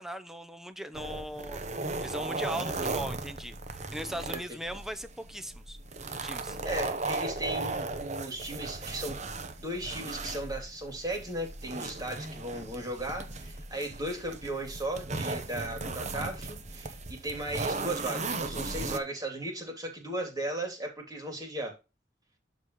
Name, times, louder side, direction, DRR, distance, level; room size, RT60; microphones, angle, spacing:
voice 1, 0.0-1.6 2.0-5.8 6.2-6.6, right 1 dB, ahead, 0.7 m, -39 dB
sound 1, 0.9-19.0, right 3 dB, 40° right, 1.0 m, -36 dB
voice 2, 6.6-9.3 9.6-21.7, right 1 dB, 20° right, 3.1 m, -36 dB
12.5 x 4.2 x 3.1 m
head